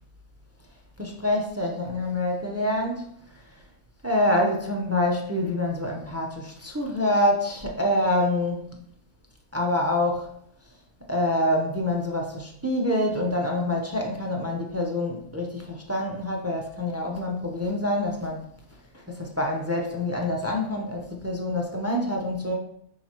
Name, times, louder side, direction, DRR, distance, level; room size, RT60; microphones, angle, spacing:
voice 1, 1.0-3.0 4.0-8.6 9.5-10.3 11.1-18.4 18.9-22.5, left 1 dB, 20° right, 0 dB, 0.4 m, -26 dB
7.2 x 4.6 x 2.9 m, 0.71 s
omnidirectional pair, 1.5 m